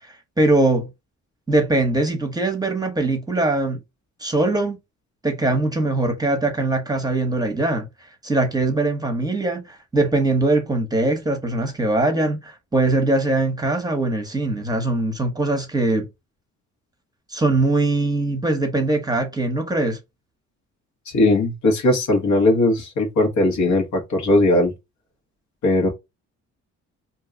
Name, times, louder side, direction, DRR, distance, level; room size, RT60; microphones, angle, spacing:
voice 1, 0.4-0.9 1.5-3.8 4.2-4.8 5.2-7.9 8.2-16.1 17.3-20.0, right 2 dB, 15° right, 0.9 m, -21 dB
voice 2, 21.1-24.7 25.6-25.9, left 2 dB, 75° left, 1.3 m, -18 dB
2.7 x 2.3 x 3.7 m
cardioid pair, 90°, 30 cm